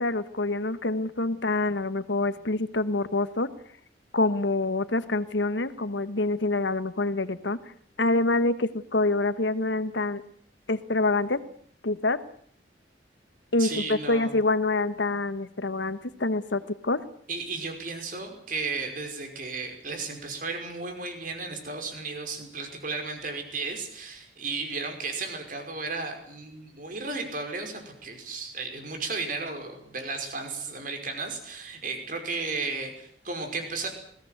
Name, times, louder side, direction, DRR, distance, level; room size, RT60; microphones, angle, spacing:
voice 1, 0.0-3.5 4.1-7.6 8.0-10.2 10.7-11.4 11.8-12.2 13.5-17.0, left 2 dB, 85° left, 13 dB, 1.4 m, -26 dB
voice 2, 13.6-14.4 17.3-33.9, right 3 dB, 50° right, 4 dB, 5.4 m, -34 dB
21.0 x 17.5 x 9.3 m, 0.63 s
head